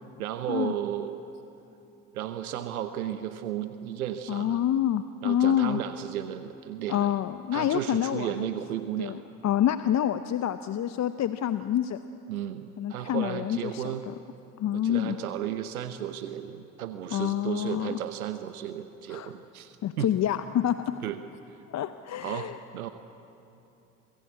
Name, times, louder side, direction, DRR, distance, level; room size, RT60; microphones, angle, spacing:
voice 1, 0.2-1.3 2.1-4.6 5.2-7.1 7.5-9.2 12.3-14.0 14.7-20.1 21.0-21.2 22.2-22.9, right 11 dB, 85° right, 10 dB, 1.0 m, -34 dB
voice 2, 4.3-5.8 6.9-8.5 9.0-12.0 12.8-14.1 14.6-15.2 17.1-18.0 19.1-19.3 19.8-20.9 21.7-22.6, left 11 dB, 40° left, 11 dB, 0.8 m, -27 dB
27.0 x 19.5 x 8.3 m, 2.9 s
hypercardioid pair, 65°, 42 cm